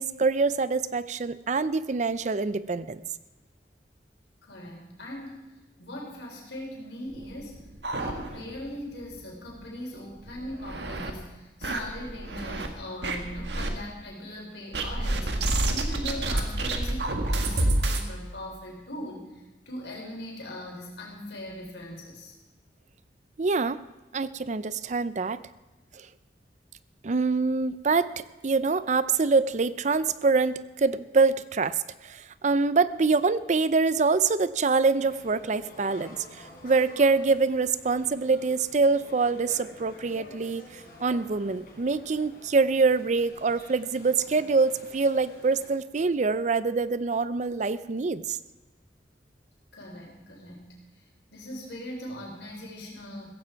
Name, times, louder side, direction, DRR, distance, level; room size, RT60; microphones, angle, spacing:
voice 1, 0.0-3.0 23.4-23.8 24.1-25.4 27.0-31.8 32.0-48.4, right 4 dB, 45° right, 15 dB, 0.5 m, -25 dB
voice 2, 4.4-5.4 5.8-7.6 7.9-22.3 49.7-50.8 51.3-53.3, left 1 dB, 90° left, -1 dB, 4.4 m, -40 dB
sound 1, 7.1-8.7 9.0-9.1 9.5-9.6 10.2-11.1 11.6-12.7 13.0-13.7 14.7-18.1, right 2 dB, 75° right, 1.6 m, -28 dB
sound 2, 34.9-45.7, left 1 dB, 55° left, 4.3 m, -50 dB
16.0 x 15.0 x 4.6 m, 1.1 s
head